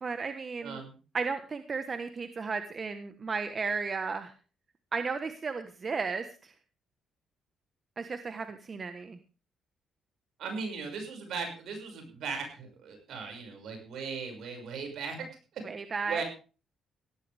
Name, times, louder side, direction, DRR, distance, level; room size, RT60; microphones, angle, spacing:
voice 1, 0.0-0.8 1.1-4.3 4.9-6.5 8.0-9.2 15.6-16.2, right 4 dB, 40° right, 8 dB, 1.3 m, -34 dB
voice 2, 0.6-0.9 10.4-15.2 15.5-15.6 16.0-16.2, right 5 dB, 75° right, 4 dB, 6.2 m, -38 dB
16.5 x 14.5 x 3.5 m, 0.35 s
cardioid pair, 90°, 0 cm